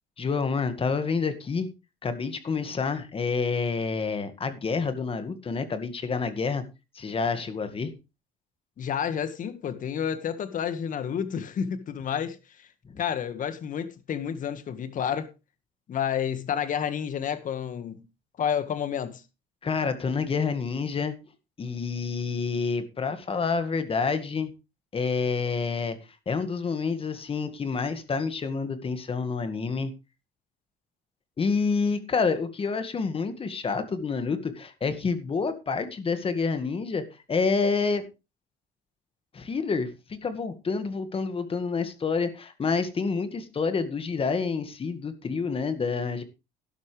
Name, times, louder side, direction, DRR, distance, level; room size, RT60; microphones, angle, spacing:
voice 1, 0.2-1.7 2.0-6.6 7.0-7.9 12.9-13.0 19.6-21.2 21.6-24.5 24.9-26.0 26.3-29.9 31.4-37.0 37.3-38.1 39.3-46.2, left 5 dB, 35° left, 1.9 m, -28 dB
voice 2, 8.8-12.7 13.0-15.3 15.9-18.1 18.4-19.2, left 8 dB, 50° left, 1.8 m, -30 dB
12.0 x 11.5 x 3.4 m
cardioid pair, 110°, 17 cm